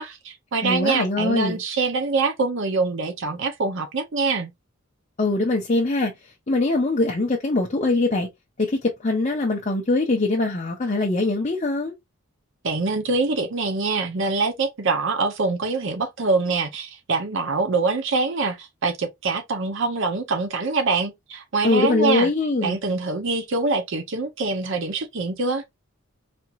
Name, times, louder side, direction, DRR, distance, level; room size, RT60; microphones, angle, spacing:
voice 1, 0.0-4.5 12.6-22.3 22.6-25.6, right 3 dB, 60° right, 0.7 m, -24 dB
voice 2, 0.6-1.6 5.2-8.3 8.6-11.9 21.6-22.8, left 2 dB, 35° left, 0.8 m, -22 dB
4.2 x 2.9 x 2.4 m
head